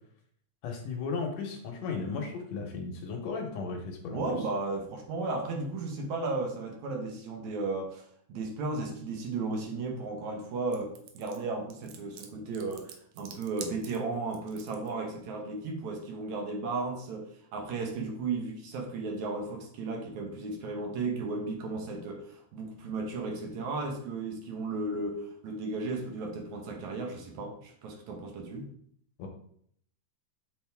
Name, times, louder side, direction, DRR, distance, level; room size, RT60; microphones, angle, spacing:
voice 1, 0.6-4.2 29.2-29.3, left 4 dB, 70° left, 3 dB, 2.0 m, -35 dB
voice 2, 4.1-28.7, right 3 dB, 75° right, 1 dB, 2.3 m, -35 dB
sound 1, 10.7-14.9, right 7 dB, 90° right, 1.2 m, -47 dB
6.7 x 4.0 x 3.4 m, 0.63 s
omnidirectional pair, 3.4 m